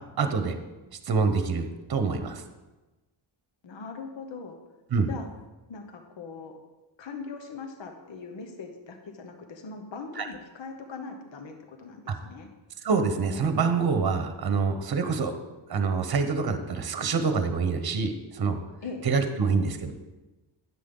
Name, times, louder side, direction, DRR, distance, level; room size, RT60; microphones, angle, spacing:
voice 1, 0.2-0.6 1.1-2.4 4.9-5.1 10.2-10.3 12.8-15.3 15.7-18.6 19.0-19.9, right 5 dB, 50° right, 8 dB, 1.0 m, -26 dB
voice 2, 3.6-4.6 5.1-5.3 5.7-6.5 7.0-12.5 18.8-19.0, left 4 dB, 60° left, 4 dB, 1.2 m, -40 dB
10.0 x 7.5 x 3.8 m, 1.1 s
wide cardioid pair, 95°, 49 cm